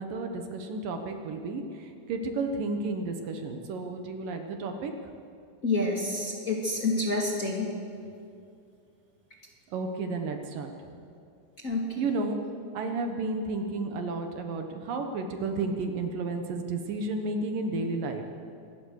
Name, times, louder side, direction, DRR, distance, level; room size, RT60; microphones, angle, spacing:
voice 1, 0.0-4.9 9.7-10.7 12.0-12.4 12.7-18.2, right 3 dB, 70° right, 5 dB, 2.9 m, -32 dB
voice 2, 5.6-7.7 11.6-11.8, left 2 dB, 25° left, -2 dB, 2.4 m, -28 dB
25.5 x 19.5 x 6.6 m, 2.4 s
omnidirectional pair, 4.3 m